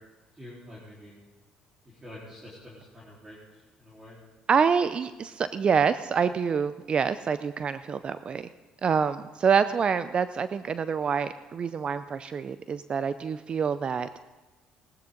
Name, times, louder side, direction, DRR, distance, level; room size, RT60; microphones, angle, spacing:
voice 1, 0.3-1.2 1.9-4.2, left 1 dB, 20° right, -7 dB, 4.0 m, -47 dB
voice 2, 4.5-8.5 8.8-14.1, right 6 dB, 40° right, 13 dB, 0.5 m, -26 dB
18.0 x 13.0 x 3.9 m, 1.2 s
cardioid pair, 90°, 3 cm